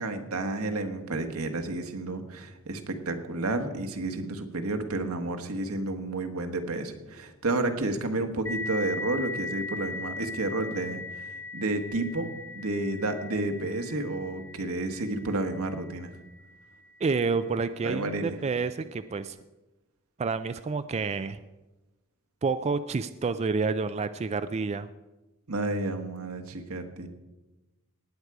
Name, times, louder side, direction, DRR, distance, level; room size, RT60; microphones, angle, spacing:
voice 1, 0.0-16.1 17.8-18.4 25.5-27.1, right 2 dB, 85° right, 6 dB, 1.4 m, -31 dB
sound 1, 8.5-17.7, left 3 dB, 15° left, 1.2 m, -39 dB
voice 2, 17.0-19.4 20.2-21.4 22.4-24.9, right 4 dB, 30° right, 11 dB, 0.4 m, -29 dB
18.5 x 8.2 x 4.8 m, 1.1 s
head